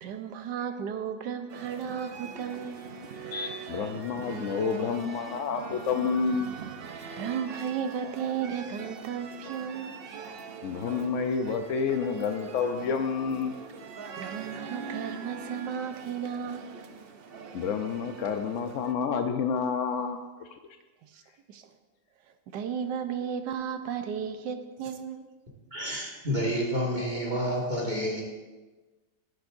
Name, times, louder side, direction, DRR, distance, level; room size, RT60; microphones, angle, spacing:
voice 1, 0.0-2.9 7.2-10.0 14.2-16.7 21.0-21.2 21.5-21.6 22.5-25.3, right 7 dB, 90° right, 8 dB, 1.4 m, -34 dB
sound 1, 1.5-18.9, right 5 dB, 60° right, 0.6 m, -42 dB
voice 2, 3.3-6.5 10.6-13.6 17.5-20.2, left 6 dB, 65° left, 5 dB, 0.8 m, -29 dB
voice 3, 25.7-28.2, equal, 25° right, -4 dB, 2.1 m, -29 dB
15.0 x 11.0 x 2.6 m, 1.2 s
omnidirectional pair, 1.8 m